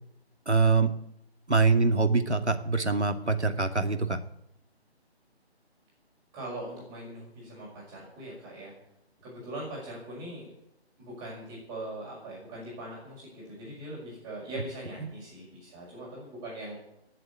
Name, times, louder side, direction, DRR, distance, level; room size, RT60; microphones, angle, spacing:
voice 1, 0.5-0.9 1.5-4.2, right 4 dB, 90° right, 7 dB, 2.4 m, -24 dB
voice 2, 6.3-8.7 9.2-10.5 11.0-16.8, right 1 dB, 10° right, -5 dB, 6.1 m, -41 dB
18.5 x 7.8 x 9.8 m, 0.81 s
figure-of-eight pair, 150°, 33 cm